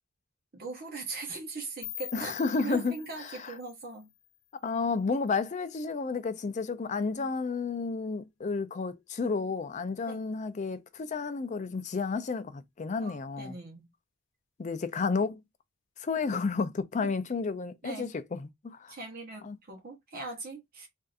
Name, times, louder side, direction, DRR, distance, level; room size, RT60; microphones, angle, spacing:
voice 1, 0.5-4.1 10.1-10.3 13.0-13.9 17.0-17.1 17.8-18.1 18.9-20.9, right 3 dB, 45° right, 0.9 m, -40 dB
sound 1, 1.8-4.7, left 13 dB, 60° left, 0.8 m, -45 dB
voice 2, 2.1-3.5 4.6-13.5 14.6-15.4 16.0-18.9 19.4-19.6, left 4 dB, 35° left, 0.4 m, -31 dB
3.4 x 2.6 x 2.4 m
head